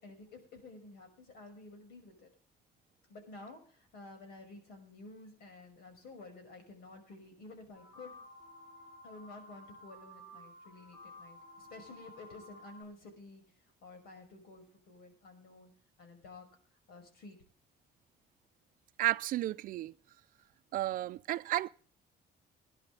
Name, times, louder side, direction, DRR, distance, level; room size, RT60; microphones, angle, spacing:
voice 1, 0.0-2.3 3.1-8.2 9.0-15.7 16.0-16.5 16.9-17.4, left 3 dB, 80° left, 5.6 m, -52 dB
sound 1, 7.7-12.8, left 1 dB, 55° left, 4.5 m, -53 dB
voice 2, 19.0-19.9 20.7-21.7, right 14 dB, 60° right, 0.5 m, -32 dB
22.5 x 10.5 x 3.3 m
cardioid pair, 175°, 16 cm